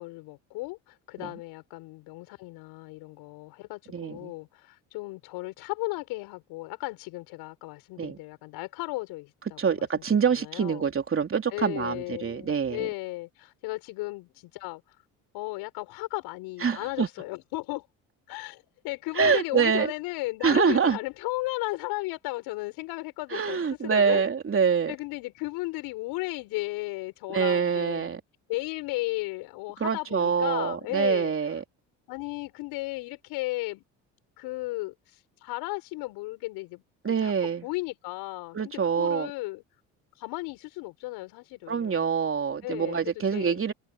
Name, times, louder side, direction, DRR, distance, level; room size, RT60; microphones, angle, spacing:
voice 1, 0.0-9.6 10.3-10.9 11.5-15.0 15.3-17.9 18.3-23.6 23.8-24.2 24.9-28.1 28.5-31.3 32.1-33.8 34.4-37.3 37.6-38.6 38.8-39.6 40.2-42.1 42.6-43.0 43.3-43.6, left 21 dB, 75° left, 6.2 m, -35 dB
voice 2, 3.9-4.3 8.0-8.2 9.6-12.9 16.6-17.1 19.1-19.9 20.4-21.0 23.3-24.9 27.3-28.2 29.8-31.6 37.0-37.7 38.5-39.3 41.7-43.7, right 6 dB, 35° right, 3.4 m, -25 dB
supercardioid pair, 75°, 38 cm